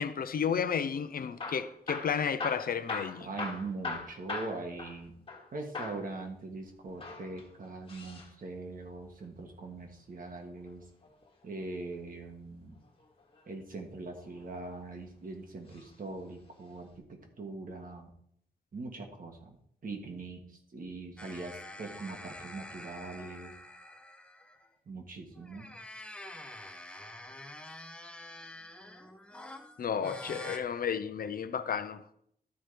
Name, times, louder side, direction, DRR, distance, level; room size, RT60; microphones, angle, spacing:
voice 1, 0.0-3.3 29.8-32.0, left 7 dB, 65° left, 0.5 m, -32 dB
Hammer / Drill, 1.2-5.5 5.7-6.1 6.9-8.3 10.1-11.3 13.0-13.5 14.2-15.0 15.7-15.9 16.2-16.3 17.0-17.1, left 3 dB, 35° left, 1.4 m, -41 dB
voice 2, 3.2-5.1 5.5-10.8 11.4-12.7 13.5-16.9 17.4-18.1 18.7-19.6 19.8-20.4 20.7-23.5 24.9-25.7, right 3 dB, 60° right, 1.6 m, -41 dB
sound 1, 21.2-24.7 25.3-30.6, left 1 dB, 5° left, 0.7 m, -47 dB
12.0 x 4.5 x 5.0 m
wide cardioid pair, 160°, 17 cm